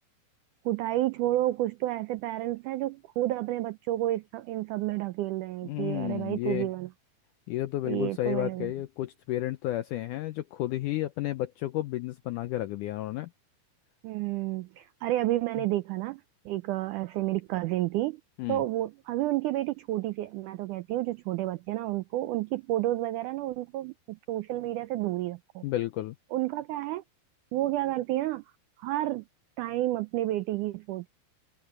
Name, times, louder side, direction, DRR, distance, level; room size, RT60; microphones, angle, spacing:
voice 1, 0.7-6.9 7.8-8.7 14.0-18.2 18.5-25.6 26.3-27.0 27.5-28.4 28.8-29.3 29.6-31.1, right 15 dB, 90° right, 1.7 m, -30 dB
voice 2, 5.6-6.7 7.5-13.3 18.4-18.6 25.6-26.2, left 15 dB, 80° left, 1.8 m, -32 dB
open air
omnidirectional pair, 4.4 m